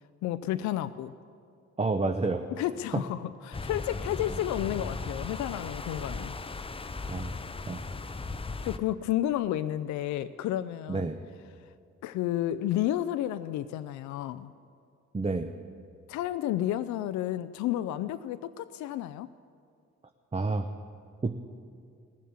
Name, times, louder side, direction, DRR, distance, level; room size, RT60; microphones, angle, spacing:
voice 1, 0.2-1.1 2.5-6.3 8.6-11.1 12.0-14.5 16.1-19.3, left 12 dB, 75° left, 13 dB, 0.5 m, -31 dB
voice 2, 1.8-2.4 2.9-3.0 7.1-7.3 7.7-7.8 10.9-11.2 15.1-15.5 20.3-20.7 21.2-21.4, right 3 dB, 20° right, 6 dB, 0.8 m, -29 dB
sound 1, 3.5-8.8, left 3 dB, 20° left, 0.6 m, -37 dB
18.5 x 7.5 x 7.1 m, 2.4 s
supercardioid pair, 60°, 29 cm